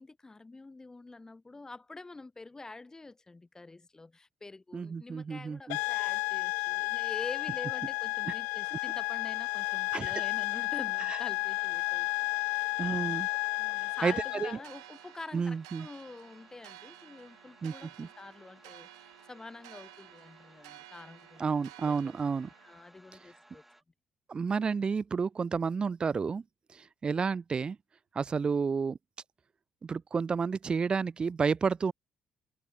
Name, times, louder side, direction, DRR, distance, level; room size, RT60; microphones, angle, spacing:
voice 1, 0.0-12.1 12.3-13.2 13.6-21.5 21.8-22.2 22.6-23.6, left 3 dB, 25° left, 3.6 m, -47 dB
voice 2, 4.7-5.8 8.3-8.4 9.9-10.1 11.1-11.2 12.8-13.3 13.8-14.6 15.3-15.9 17.6-17.7 18.0-18.1 21.4-22.5 24.3-26.4 26.7-27.8 28.1-29.0 29.8-31.9, right 5 dB, 35° right, 0.4 m, -31 dB
sound 1, 5.7-14.6, left 31 dB, 80° left, 0.4 m, -32 dB
sound 2, 8.6-23.8, right 1 dB, 5° right, 4.9 m, -60 dB
sound 3, 14.6-22.8, right 19 dB, 85° right, 4.0 m, -54 dB
hypercardioid pair, 50°, 3 cm